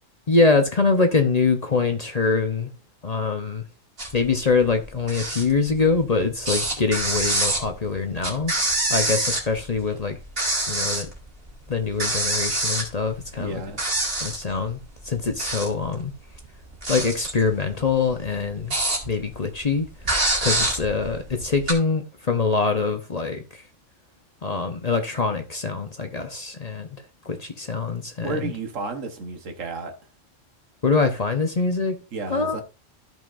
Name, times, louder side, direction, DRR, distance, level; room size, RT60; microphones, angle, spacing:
voice 1, 0.3-2.7 3.0-3.6 4.1-8.5 8.9-10.2 10.7-11.1 11.7-13.6 14.2-16.1 16.9-18.7 19.0-19.9 20.4-23.6 24.4-26.9 27.2-28.5 30.8-32.0 32.3-32.6, left 4 dB, 35° left, 0.9 m, -24 dB
sound 1, 4.0-4.3 4.6-6.1 6.4-9.8 10.1-11.1 11.5-11.6 11.9-13.5 13.8-14.5 15.1-15.9 16.3-19.3 19.7-19.8 20.0-21.7, right 2 dB, 45° right, 2.3 m, -25 dB
voice 2, 13.4-13.8 28.2-30.0 32.1-32.6, right 3 dB, 80° right, 1.5 m, -32 dB
14.0 x 5.4 x 2.6 m
omnidirectional pair, 1.3 m